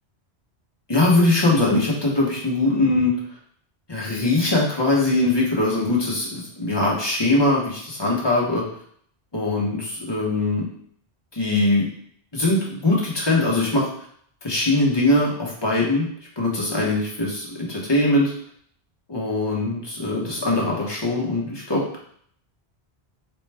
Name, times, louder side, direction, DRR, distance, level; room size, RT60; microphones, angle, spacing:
voice 1, 0.9-3.1 3.9-8.6 9.3-10.7 11.3-11.9 12.3-13.9 14.4-16.1 16.4-18.3 19.1-22.0, left 2 dB, 25° left, -4 dB, 0.8 m, -21 dB
4.2 x 2.2 x 3.3 m, 0.62 s
omnidirectional pair, 1.1 m